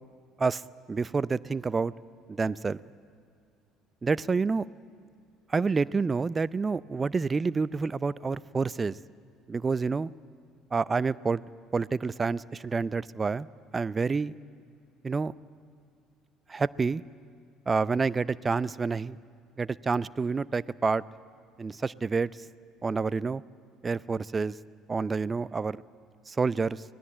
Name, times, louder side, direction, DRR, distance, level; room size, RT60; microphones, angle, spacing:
voice 1, 0.9-1.9 2.3-2.8 4.0-4.7 5.5-9.0 9.5-10.1 10.7-11.4 11.7-13.5 13.7-14.3 15.0-15.3 16.5-17.0 17.7-19.2 19.6-21.0 21.6-22.3 22.8-23.4 23.8-24.5 24.9-25.8 26.3-26.8, right 4 dB, 30° right, 19 dB, 0.5 m, -28 dB
24.0 x 18.5 x 8.8 m, 2.3 s
hypercardioid pair, 60°, 0 cm